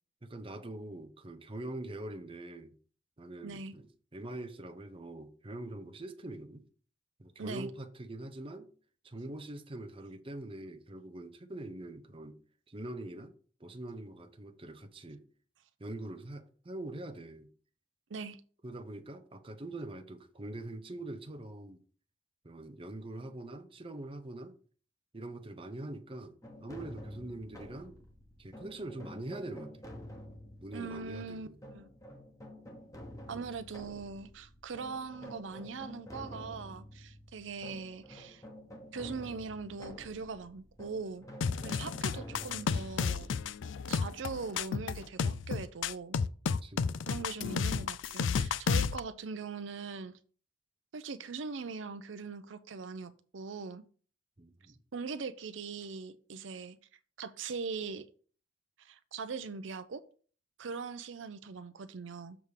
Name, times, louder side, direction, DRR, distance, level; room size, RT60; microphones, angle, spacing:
voice 1, 0.2-2.7 3.2-6.6 7.2-8.7 9.0-12.4 12.7-13.3 13.6-15.2 15.8-17.5 18.6-21.8 22.4-24.6 25.1-26.3 26.6-28.0 28.4-29.7 30.6-31.5 33.4-33.5 46.6-46.9 54.4-54.8, right 1 dB, 30° right, 0.8 m, -43 dB
voice 2, 3.4-3.7 7.4-7.7 18.1-18.4 30.7-31.9 33.3-38.4 38.9-41.2 41.6-43.3 43.9-46.2 47.1-50.1 50.9-53.8 54.9-56.8 57.2-58.0 58.8-60.0 60.6-62.4, right 4 dB, 80° right, 0.6 m, -41 dB
sound 1, 26.4-45.1, equal, 20° left, 1.2 m, -50 dB
sound 2, 41.4-49.0, left 6 dB, 75° left, 0.4 m, -32 dB
6.9 x 3.6 x 6.4 m
head